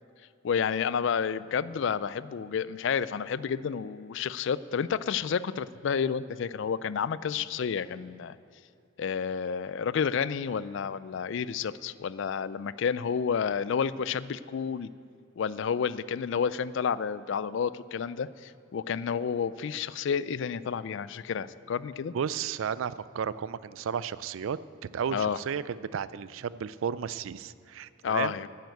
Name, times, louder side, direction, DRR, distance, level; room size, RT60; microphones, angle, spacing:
voice 1, 0.4-8.4 9.0-14.9 15.4-22.1 25.1-25.4 28.0-28.5, left 6 dB, 60° left, 17 dB, 0.4 m, -30 dB
voice 2, 22.1-24.6 24.9-28.3, right 7 dB, 70° right, 17 dB, 0.4 m, -33 dB
9.4 x 9.3 x 7.9 m, 2.5 s
head